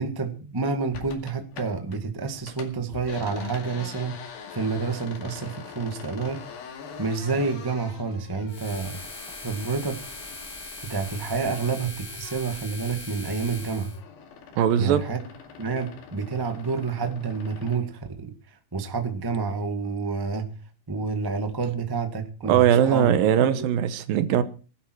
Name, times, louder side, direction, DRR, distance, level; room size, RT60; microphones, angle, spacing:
voice 1, 0.0-4.2 4.5-6.4 7.0-9.0 9.4-10.0 10.9-13.9 14.8-15.2 15.6-18.3 18.7-20.5 20.9-23.1 23.5-23.6, right 4 dB, 30° right, 0.4 m, -29 dB
sound 1, 0.9-2.0 2.3-12.7 13.0-17.9, left 6 dB, 85° left, 4.0 m, -44 dB
sound 2, 8.5-14.0, left 2 dB, 20° left, 1.5 m, -40 dB
voice 2, 14.6-15.0 22.4-24.4, right 10 dB, 80° right, 2.8 m, -20 dB
20.5 x 12.0 x 4.6 m
omnidirectional pair, 4.2 m